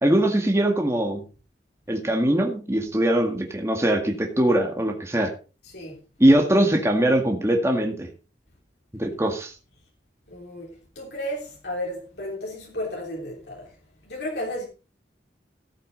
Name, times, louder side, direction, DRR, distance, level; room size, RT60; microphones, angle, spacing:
voice 1, 0.0-1.2 1.9-5.3 6.2-8.1 9.0-9.5, right 1 dB, 15° right, 1.9 m, -21 dB
voice 2, 5.6-6.0 10.3-14.7, left 1 dB, 70° left, 3.4 m, -33 dB
15.5 x 8.4 x 4.1 m
head